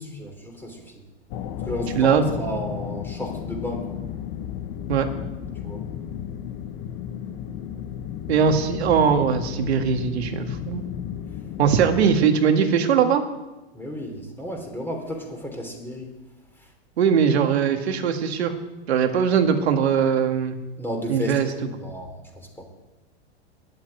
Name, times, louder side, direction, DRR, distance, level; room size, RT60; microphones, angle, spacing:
voice 1, 0.0-1.0 1.6-4.0 5.6-5.8 13.7-16.1 16.6-16.7 20.8-22.6, equal, 5° left, 2 dB, 3.1 m, -33 dB
sound 1, 1.3-12.2, left 9 dB, 45° left, 1.0 m, -33 dB
voice 2, 2.0-2.3 4.9-5.1 8.3-10.8 11.6-13.2 17.0-18.5 18.9-20.6 21.1-21.5, right 7 dB, 75° right, 6 dB, 1.7 m, -20 dB
10.5 x 8.1 x 9.0 m, 1.1 s
hypercardioid pair, 110°, 33 cm